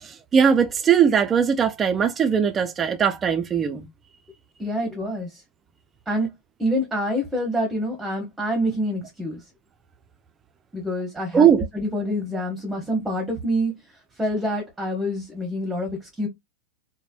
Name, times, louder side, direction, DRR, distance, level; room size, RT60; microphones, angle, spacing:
voice 1, 0.0-3.9 11.3-11.7, right 7 dB, 20° right, 0.4 m, -20 dB
voice 2, 4.6-5.4 6.1-6.3 6.6-9.4 10.7-11.5 11.7-16.3, equal, 5° right, 0.9 m, -27 dB
3.2 x 2.0 x 2.4 m
figure-of-eight pair, 90°, 0 cm